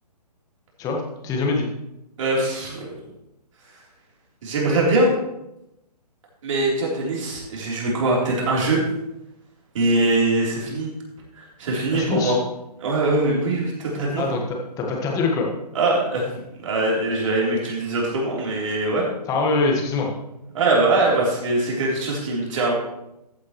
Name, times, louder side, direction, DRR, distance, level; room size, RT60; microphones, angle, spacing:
voice 1, 0.8-1.7 11.9-12.4 14.2-15.5 19.3-20.1, left 3 dB, 15° left, 1 dB, 1.6 m, -24 dB
voice 2, 2.2-2.9 4.4-5.1 6.4-8.8 9.7-10.9 11.4-12.4 12.8-14.2 15.7-16.3 16.6-19.0 20.5-22.7, right 2 dB, 50° right, -3 dB, 3.8 m, -22 dB
14.5 x 8.4 x 3.2 m, 0.88 s
figure-of-eight pair, 140°, 21 cm